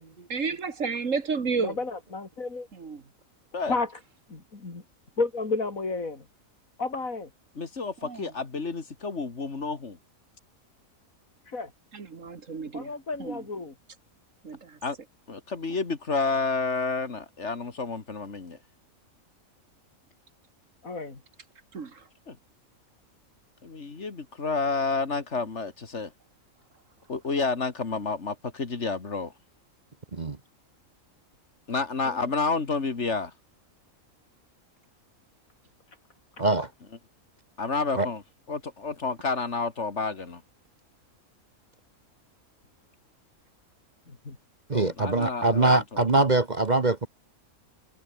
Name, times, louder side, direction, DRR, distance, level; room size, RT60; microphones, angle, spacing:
voice 1, 0.3-1.8 2.7-3.0 8.0-8.3 11.9-12.9 13.2-13.4 14.4-14.8 21.7-22.0, right 5 dB, 65° right, 2.2 m, -31 dB
voice 2, 1.6-2.7 3.7-3.9 4.3-4.8 5.2-6.3 6.8-7.3 11.5-11.7 12.7-13.7 20.8-21.2 32.0-32.2 44.3-44.4, left 3 dB, 75° left, 3.8 m, -31 dB
voice 3, 7.6-10.0 14.8-15.0 15.3-18.6 22.3-22.4 23.6-26.1 27.1-29.3 31.7-33.3 37.6-38.2 38.5-40.4 44.7-46.0, left 4 dB, 55° left, 2.4 m, -30 dB
voice 4, 36.4-36.7 38.0-38.1 44.7-47.1, right 2 dB, 35° right, 1.2 m, -23 dB
omnidirectional pair, 1.5 m